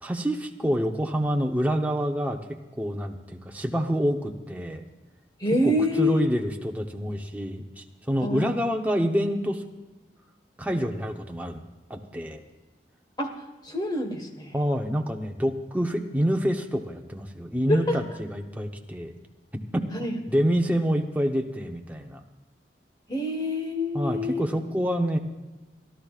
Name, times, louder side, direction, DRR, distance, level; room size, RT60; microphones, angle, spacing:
voice 1, 0.0-2.4 2.8-4.8 5.6-7.7 8.1-9.6 10.6-11.6 11.9-12.4 14.5-19.1 19.7-19.9 20.3-22.2 23.9-25.2, equal, 10° right, 3 dB, 0.8 m, -27 dB
voice 2, 5.4-6.3 8.2-8.5 13.2-13.3 13.6-14.5 17.7-18.0 19.9-20.2 23.1-24.4, left 1 dB, 25° left, 5 dB, 1.4 m, -26 dB
29.0 x 12.0 x 2.4 m, 1.2 s
head